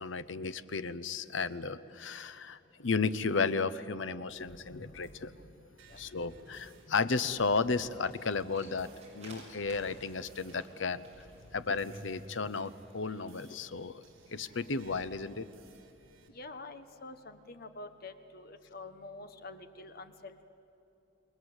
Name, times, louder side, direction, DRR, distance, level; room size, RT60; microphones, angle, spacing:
voice 1, 0.0-5.5 6.0-8.9 9.1-11.1 11.5-14.0 14.3-15.5, left 4 dB, 70° left, 14 dB, 0.8 m, -33 dB
sound 1, 4.3-16.3, right 1 dB, 75° right, 3.4 m, -56 dB
sound 2, 6.4-14.7, right 2 dB, 35° right, 6.4 m, -59 dB
voice 2, 16.3-20.4, left 3 dB, 50° left, 9 dB, 1.3 m, -47 dB
29.0 x 20.5 x 8.1 m, 2.9 s
head